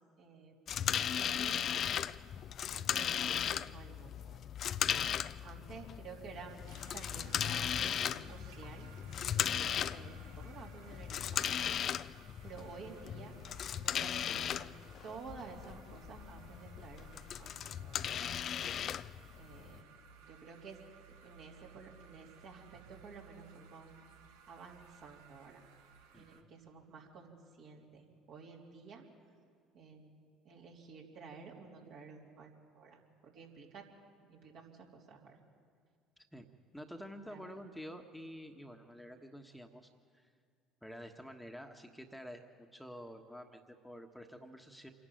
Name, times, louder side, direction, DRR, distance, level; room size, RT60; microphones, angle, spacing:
voice 1, 0.2-0.5 1.1-2.0 2.7-4.4 5.4-6.6 6.9-11.7 12.4-13.3 13.7-14.7 15.0-18.1 19.3-19.8 20.2-20.8 21.1-23.9 24.5-25.6 26.1-29.0 29.7-30.2 30.5-33.8 34.3-35.4 37.2-37.5, right 5 dB, 65° right, -2 dB, 3.6 m, -52 dB
sound 1, 0.7-19.8, left 9 dB, 50° left, 0.5 m, -37 dB
sound 2, 6.7-26.4, right 6 dB, 80° right, 1.3 m, -60 dB
voice 2, 26.1-26.5 36.2-36.4 36.7-40.3 40.8-44.9, equal, ahead, 4 dB, 1.4 m, -49 dB
26.0 x 11.5 x 9.2 m, 2.1 s
hypercardioid pair, 65°, 0 cm